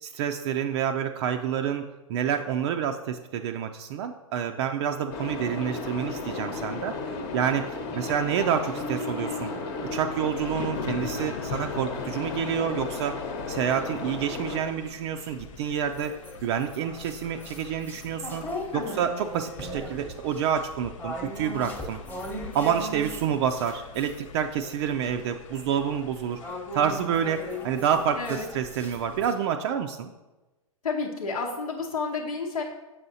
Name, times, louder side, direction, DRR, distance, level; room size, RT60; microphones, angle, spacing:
voice 1, 0.0-9.5 9.9-13.2 13.5-18.5 18.7-22.0 22.5-26.4 26.7-30.1, right 8 dB, 50° right, 5 dB, 0.4 m, -28 dB
sound 1, 5.1-14.6, left 3 dB, 45° left, 1.0 m, -34 dB
sound 2, 10.4-29.3, left 6 dB, 65° left, 0.5 m, -44 dB
sound 3, 13.4-14.7 15.3-24.2 24.6-29.3, equal, 10° left, 1.0 m, -39 dB
voice 2, 28.1-28.5 30.8-32.6, left 4 dB, 85° left, -2 dB, 0.9 m, -31 dB
7.3 x 5.6 x 2.7 m, 1.1 s
hypercardioid pair, 115°, 18 cm